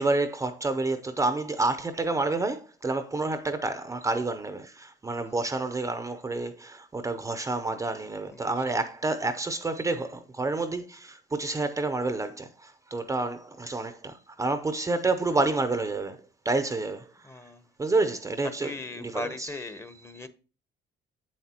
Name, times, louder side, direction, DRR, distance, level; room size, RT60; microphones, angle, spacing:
voice 1, 0.0-16.2 16.4-17.3 17.8-18.7 19.0-19.5, right 3 dB, 20° right, 0.6 m, -29 dB
voice 2, 8.3-8.8 17.2-17.7 18.4-20.3, left 2 dB, 15° left, 0.8 m, -38 dB
7.7 x 7.3 x 2.9 m
cardioid pair, 110°, 17 cm